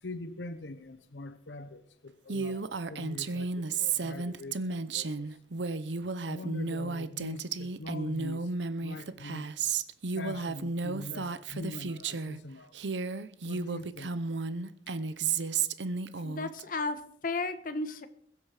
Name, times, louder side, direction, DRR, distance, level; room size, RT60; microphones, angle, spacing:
voice 1, 0.0-5.3 6.2-8.5 8.8-9.5 10.1-12.7 13.4-14.1 14.9-15.0 16.1-16.2, left 2 dB, 85° left, 11 dB, 0.9 m, -43 dB
Female speech woman speaking, 2.3-12.4 12.7-16.6, right 4 dB, 90° right, 0.8 m, -33 dB
voice 2, 16.2-18.1, left 3 dB, 50° left, 9 dB, 1.2 m, -34 dB
21.5 x 8.4 x 4.9 m, 0.65 s
head